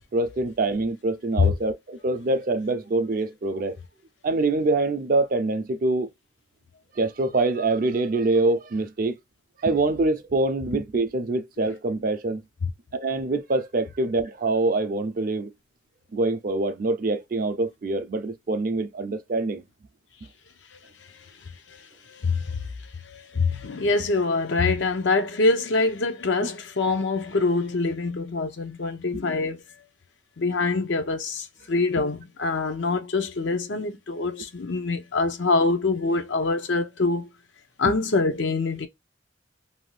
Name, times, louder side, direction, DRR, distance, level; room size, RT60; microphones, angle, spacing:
voice 1, 0.1-3.8 4.2-6.1 7.0-9.2 9.6-12.4 12.9-15.5 16.1-19.6, right 2 dB, 45° right, 0.4 m, -25 dB
voice 2, 21.7-22.7 23.0-29.6 30.4-37.3 37.8-38.9, left 3 dB, 70° left, 0.6 m, -25 dB
2.7 x 2.3 x 3.1 m
head